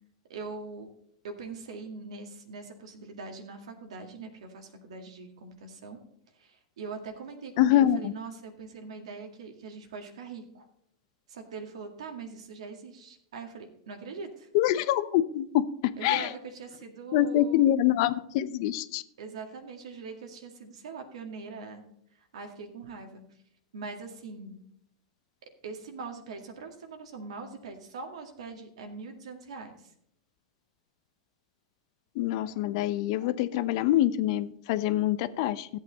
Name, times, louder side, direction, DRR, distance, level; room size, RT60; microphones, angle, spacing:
voice 1, 0.3-0.9 1.2-6.0 6.3-10.7 11.3-14.5 16.0-17.7 19.2-21.8 22.1-23.4 23.7-24.6 25.6-29.9, right 4 dB, 80° right, 4 dB, 2.0 m, -42 dB
voice 2, 7.6-8.1 14.5-16.3 17.1-19.0 32.2-35.7, left 12 dB, 55° left, 14 dB, 0.7 m, -25 dB
14.0 x 8.3 x 4.0 m, 0.73 s
hypercardioid pair, 120°, 3 cm